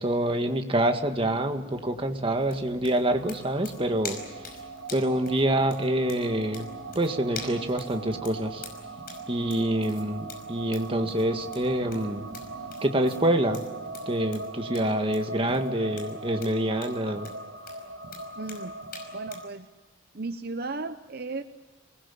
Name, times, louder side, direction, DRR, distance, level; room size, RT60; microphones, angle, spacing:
voice 1, 0.0-4.2 4.9-6.7 7.0-8.6 9.3-12.2 12.8-13.6 14.1-17.3, right 1 dB, 30° right, 5 dB, 1.8 m, -26 dB
sound 1, 0.9-12.7, equal, 20° left, 7.1 m, -53 dB
sound 2, 2.4-19.5, left 4 dB, 50° left, 5.3 m, -45 dB
sound 3, 3.1-19.5, right 3 dB, 75° right, 1.9 m, -40 dB
voice 2, 18.4-18.8 19.1-19.7 20.1-21.4, right 3 dB, 55° right, 8 dB, 0.8 m, -35 dB
28.0 x 20.0 x 8.5 m, 1.2 s
head